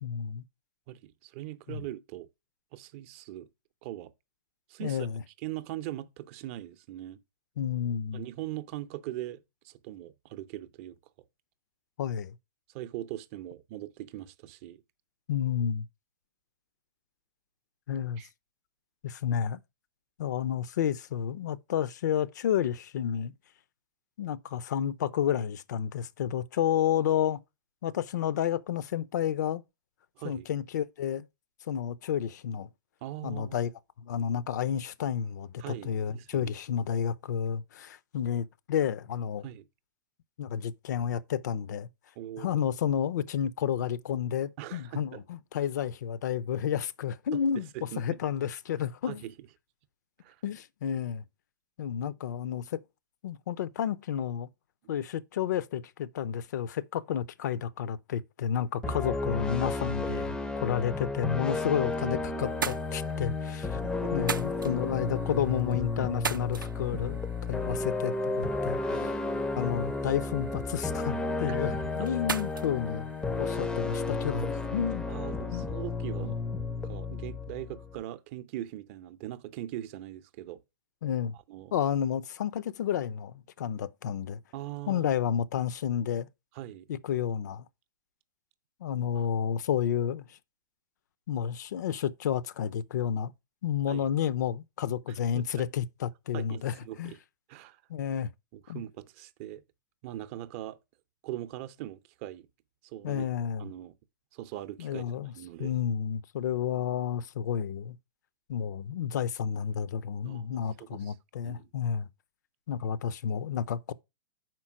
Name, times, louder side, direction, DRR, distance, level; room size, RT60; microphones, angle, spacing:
voice 1, 0.0-0.4 1.7-1.9 4.8-5.2 7.6-8.2 12.0-12.3 15.3-15.9 17.9-18.2 19.0-19.6 20.2-23.3 24.2-27.4 27.8-29.6 30.2-31.3 31.7-32.7 33.2-33.7 34.0-39.5 40.4-41.9 42.4-47.7 48.0-49.2 50.4-51.2 51.8-52.8 53.2-54.5 54.9-60.4 60.6-63.8 64.1-67.2 67.5-68.8 69.6-73.1 73.4-75.0 75.5-75.7 76.2-76.3 81.0-81.3 81.7-84.4 84.9-86.3 86.9-87.7 88.8-90.4 91.3-93.3 93.6-97.1 97.9-98.3 98.7-98.8 103.0-103.7 104.8-105.3 105.6-108.0 108.5-112.1 112.7-113.9, left 9 dB, 60° left, 0.5 m, -31 dB
voice 2, 0.9-2.3 2.7-3.5 3.8-4.1 4.7-5.0 5.4-7.2 8.1-11.0 12.7-14.8 18.2-18.3 30.2-30.5 33.0-33.6 35.6-36.5 39.4-39.7 42.2-42.6 44.6-45.2 47.3-47.4 47.7-48.2 49.1-49.3 50.2-50.4 58.9-59.0 63.7-64.1 68.8-69.2 71.5-72.1 75.1-76.4 76.8-80.6 81.5-81.7 84.5-85.1 86.5-86.9 89.1-89.3 93.9-94.1 95.3-95.6 96.3-97.2 97.5-97.8 98.5-99.6 100.0-100.8 101.2-102.5 102.8-103.2 103.6-104.0 104.3-105.0 105.3-105.7 110.2-111.1 111.4-111.7, right 14 dB, 40° right, 0.6 m, -41 dB
sound 1, 58.8-78.0, left 3 dB, 5° left, 0.5 m, -32 dB
sound 2, 61.8-62.1 62.4-74.0, right 6 dB, 85° right, 0.5 m, -41 dB
5.6 x 4.5 x 6.0 m
figure-of-eight pair, 110°, 11 cm